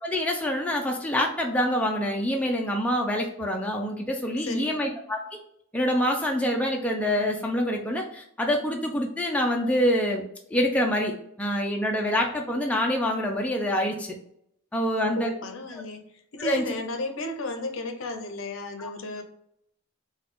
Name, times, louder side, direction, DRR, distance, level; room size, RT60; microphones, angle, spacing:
voice 1, 0.0-5.2 5.7-10.2 10.5-14.2 14.7-15.3 15.7-15.8 16.4-16.7 18.8-18.9, equal, 5° left, 0 dB, 0.4 m, -26 dB
voice 2, 4.4-4.8 15.0-16.1 16.3-19.2, left 2 dB, 65° left, 6 dB, 0.6 m, -34 dB
4.0 x 2.3 x 3.0 m, 0.73 s
head